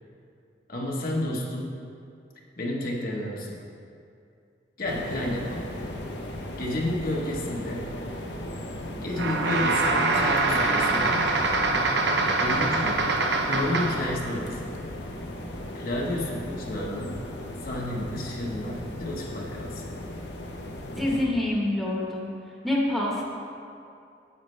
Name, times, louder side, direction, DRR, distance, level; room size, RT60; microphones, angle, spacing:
voice 1, 0.7-1.9 2.6-3.6 4.8-5.7 6.6-7.9 9.0-11.3 12.4-13.0 13.4-14.6 15.7-17.2 17.6-19.8, left 1 dB, 50° left, -3 dB, 1.2 m, -31 dB
sound 1, 4.8-21.3, left 1 dB, 75° left, 0.9 m, -37 dB
sound 2, 9.1-14.1, right 3 dB, 75° right, 0.8 m, -24 dB
voice 2, 21.0-22.3 22.6-23.2, left 1 dB, ahead, -5 dB, 1.2 m, -26 dB
9.6 x 8.8 x 3.3 m, 2.5 s
head